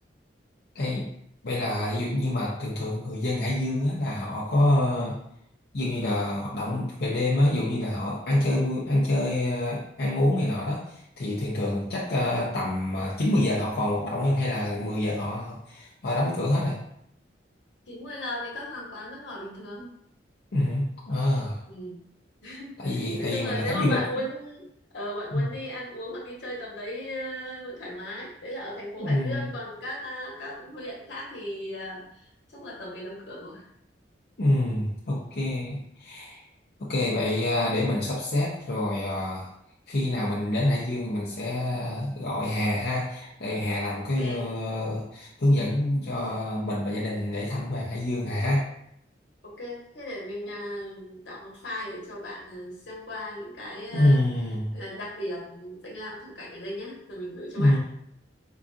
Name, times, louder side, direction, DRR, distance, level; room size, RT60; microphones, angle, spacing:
voice 1, 0.7-1.1 1.4-5.2 5.7-16.8 20.5-21.6 22.8-24.0 25.3-25.4 29.0-29.4 34.4-36.4 36.8-39.5 39.9-48.7 53.9-54.7 57.6-57.8, left 1 dB, 60° left, -6 dB, 0.6 m, -26 dB
voice 2, 17.9-19.9 21.7-22.0 22.4-24.6 24.9-33.6 44.1-44.5 49.4-54.2 54.7-57.8, left 1 dB, 85° left, -4 dB, 1.2 m, -36 dB
4.8 x 2.6 x 2.4 m, 0.73 s
head